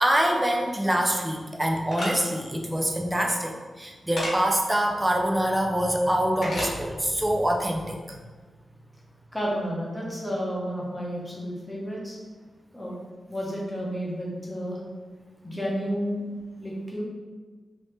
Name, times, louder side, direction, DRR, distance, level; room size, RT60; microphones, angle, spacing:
voice 1, 0.0-8.2, right 1 dB, 10° right, 1 dB, 0.4 m, -25 dB
sound 1, 1.9-2.1 4.2-4.3 6.4-6.7, left 1 dB, 50° left, 1.1 m, -29 dB
voice 2, 9.3-12.2 12.7-12.9 13.3-14.8 15.4-16.2 16.6-17.0, equal, 10° left, -5 dB, 0.9 m, -31 dB
3.2 x 2.7 x 3.1 m, 1.4 s
wide cardioid pair, 95°, 0 cm